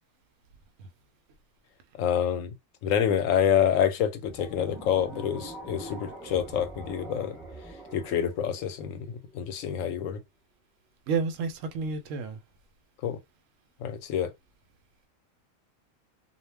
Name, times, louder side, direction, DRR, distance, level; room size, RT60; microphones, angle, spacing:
voice 1, 2.0-2.5 2.8-7.3 7.9-9.1 9.3-10.2 13.0-13.2 13.8-14.3, left 9 dB, 90° left, 1.0 m, -27 dB
sound 1, 4.2-9.4, right 2 dB, ahead, 0.5 m, -44 dB
voice 2, 11.1-12.4, right 5 dB, 75° right, 0.9 m, -30 dB
2.3 x 2.2 x 3.3 m
omnidirectional pair, 1.3 m